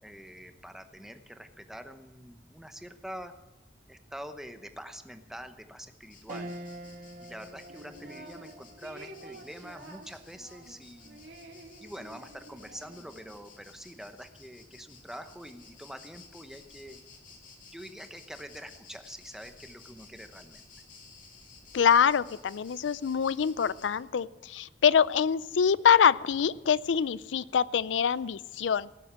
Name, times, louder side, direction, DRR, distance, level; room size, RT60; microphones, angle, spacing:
voice 1, 0.0-3.3 3.9-6.5 7.2-11.2 11.8-17.0 17.7-20.6, equal, 5° right, 8 dB, 0.9 m, -45 dB
sound 1, 6.0-24.0, left 4 dB, 45° left, 2.5 m, -55 dB
sound 2, 6.3-15.9 16.4-16.5 17.8-18.2, right 1 dB, 50° right, 1.4 m, -49 dB
sound 3, 7.7-8.5 8.8-13.5, right 2 dB, 70° right, 2.5 m, -50 dB
voice 2, 21.7-28.9, left 7 dB, 85° left, 19 dB, 0.4 m, -25 dB
18.0 x 7.8 x 7.5 m, 1.0 s
head